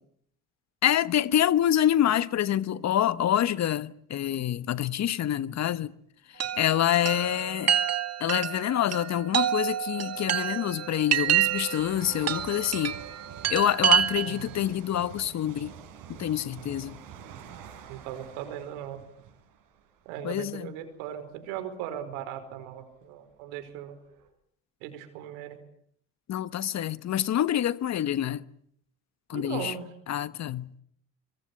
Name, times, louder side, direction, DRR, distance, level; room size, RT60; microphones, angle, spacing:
voice 1, 0.8-5.9 6.3-7.8 8.2-13.0 13.5-15.7 16.1-17.0 20.2-20.7 26.3-28.5 29.3-29.7 30.1-30.7, left 11 dB, 50° left, 1.2 m, -26 dB
Chime, 6.4-14.5, right 10 dB, 45° right, 1.9 m, -28 dB
sound 1, 7.2-7.5 8.6-8.7 9.4-20.8 21.5-21.6 22.4-22.5 22.7-24.3, right 8 dB, 65° right, 5.8 m, -48 dB
voice 2, 14.2-14.5 17.9-19.0 20.0-24.0 24.8-25.6 29.3-29.9, right 10 dB, 85° right, 5.0 m, -38 dB
25.5 x 23.5 x 8.5 m
supercardioid pair, 80°, 35 cm